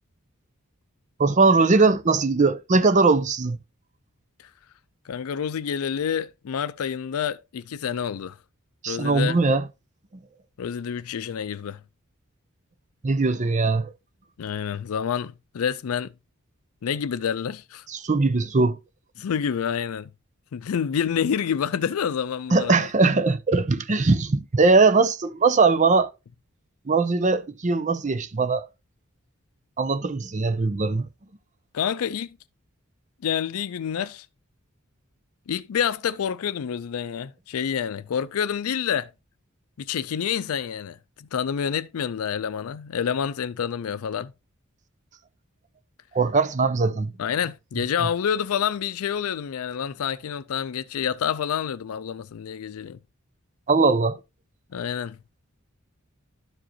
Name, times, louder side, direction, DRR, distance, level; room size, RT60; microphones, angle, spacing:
voice 1, 1.2-3.6 8.8-9.6 13.0-13.9 17.9-18.8 22.5-26.1 26.9-28.7 29.8-31.1 46.1-47.1 53.7-54.2, right 3 dB, 35° right, 0.6 m, -20 dB
voice 2, 5.1-8.4 8.9-9.4 10.6-11.8 14.4-16.1 16.8-17.8 19.2-20.1 20.5-22.9 31.7-32.4 33.2-34.3 35.5-39.1 39.8-44.3 47.2-53.0 54.7-55.2, left 8 dB, 90° left, 0.4 m, -28 dB
12.0 x 4.9 x 2.8 m
head